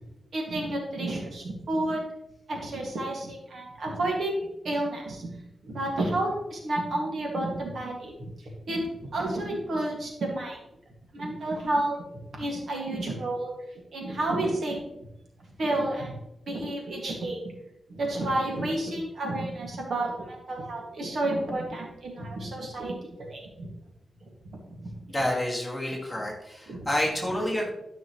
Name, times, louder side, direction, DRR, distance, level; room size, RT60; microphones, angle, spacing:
voice 1, 0.3-2.0 2.5-5.4 5.6-8.1 8.7-10.6 11.1-12.0 12.4-13.5 13.9-14.8 15.6-16.1 16.5-17.4 17.9-23.7 24.7-24.9 26.7-26.9, right 1 dB, 65° right, -1 dB, 2.0 m, -30 dB
voice 2, 25.1-27.7, left 1 dB, 5° left, -4 dB, 2.2 m, -29 dB
12.5 x 5.9 x 3.1 m, 0.85 s
wide cardioid pair, 140°, 0 cm